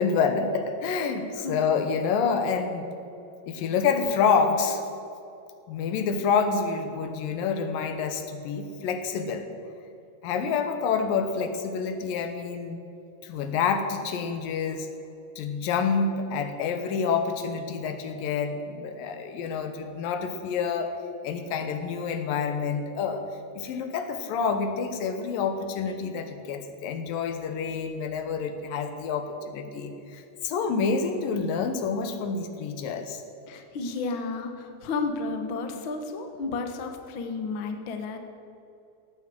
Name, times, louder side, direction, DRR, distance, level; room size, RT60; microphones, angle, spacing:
voice 1, 0.0-2.9 3.5-4.8 5.7-9.5 10.2-12.8 13.2-14.9 15.4-21.0 21.2-23.2 23.5-33.2, left 5 dB, 80° left, 7 dB, 2.8 m, -28 dB
voice 2, 33.5-38.2, left 3 dB, 55° left, 5 dB, 1.4 m, -32 dB
16.5 x 9.6 x 7.7 m, 2.7 s
omnidirectional pair, 3.9 m